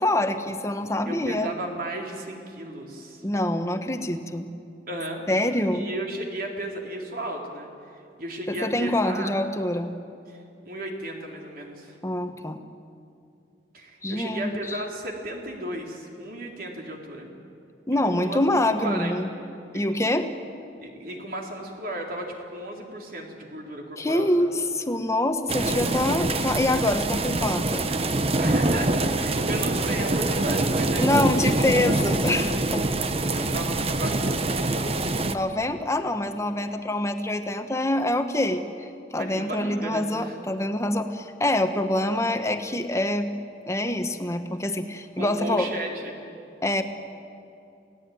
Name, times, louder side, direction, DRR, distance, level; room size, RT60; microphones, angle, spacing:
voice 1, 0.0-1.5 3.2-4.5 5.3-5.9 8.5-9.9 12.0-12.6 14.0-14.8 17.9-19.3 19.7-20.3 24.0-27.9 31.0-32.8 35.3-38.6 39.1-43.3 43.7-45.7 46.6-46.8, left 1 dB, 15° left, 7 dB, 1.4 m, -25 dB
voice 2, 1.1-3.2 4.9-5.2 5.7-7.7 7.9-9.3 10.3-10.4 10.6-12.0 13.7-17.4 18.0-18.4 18.8-19.2 19.7-19.8 20.8-24.5 28.4-31.6 31.9-32.0 33.3-34.7 39.2-40.3 45.2-46.2, right 1 dB, 55° right, 1 dB, 3.8 m, -34 dB
sound 1, 25.5-35.3, right 2 dB, 35° right, 1.0 m, -25 dB
28.0 x 18.0 x 9.4 m, 2.7 s
head